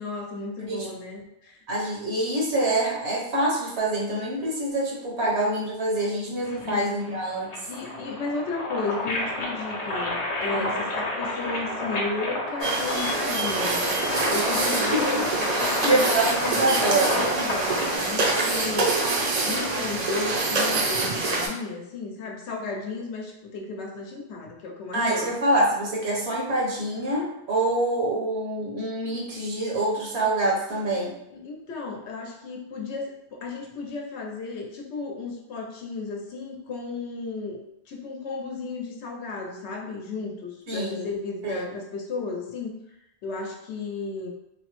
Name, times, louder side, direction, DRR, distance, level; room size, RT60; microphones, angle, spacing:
voice 1, 0.0-1.6 6.6-6.9 7.7-13.9 14.3-19.0 19.4-25.3 31.3-42.7 43.2-44.3, left 3 dB, 85° left, 0 dB, 0.9 m, -34 dB
voice 2, 1.7-7.5 10.5-10.8 14.9-15.2 15.8-17.3 24.9-31.1 40.7-41.1 41.4-41.6, right 1 dB, 75° right, -4 dB, 1.1 m, -26 dB
sound 1, 6.4-18.0, left 1 dB, 50° left, 0.5 m, -30 dB
sound 2, 12.6-21.5, right 3 dB, 50° right, 0.5 m, -25 dB
3.1 x 2.0 x 2.9 m, 0.83 s
omnidirectional pair, 1.1 m